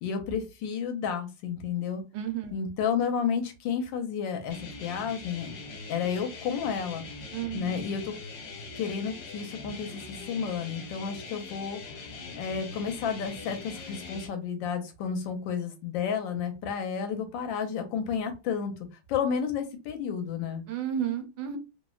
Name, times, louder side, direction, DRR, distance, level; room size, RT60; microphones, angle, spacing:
voice 1, 0.0-2.0 2.5-5.6 5.9-7.0 7.5-8.1 8.8-11.8 12.3-18.7 19.1-20.6, left 7 dB, 85° left, 6 dB, 1.4 m, -31 dB
voice 2, 2.1-2.5 7.3-7.8 20.7-21.6, right 9 dB, 75° right, 6 dB, 1.2 m, -32 dB
sound 1, 4.5-14.3, left 4 dB, 65° left, 1.4 m, -42 dB
3.2 x 2.0 x 2.3 m, 0.27 s
omnidirectional pair, 2.0 m